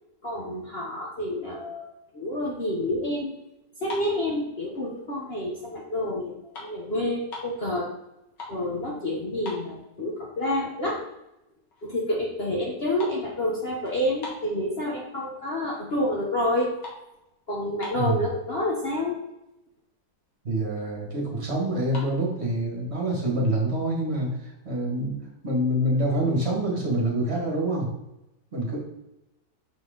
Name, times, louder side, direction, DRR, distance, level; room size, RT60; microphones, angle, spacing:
voice 1, 0.2-3.3 3.8-7.9 8.5-11.0 11.8-16.7 17.5-19.2, left 1 dB, 40° left, -2 dB, 1.1 m, -28 dB
sound 1, 3.7-5.1 5.6-5.9 6.2-7.6 8.1-8.7 9.0-9.1 9.4-10.3 10.7-10.8 11.4-11.5 11.7-12.1 12.3-15.1 15.6-16.0 16.3-18.3 19.0-19.1 19.3-19.5 19.9-20.0 20.3-20.9 21.7-22.1, left 3 dB, 85° left, 2.5 m, -42 dB
voice 2, 20.4-25.2 25.4-27.9 28.5-28.8, right 1 dB, 40° right, -2 dB, 2.0 m, -26 dB
6.2 x 6.2 x 3.8 m, 0.90 s
omnidirectional pair, 1.9 m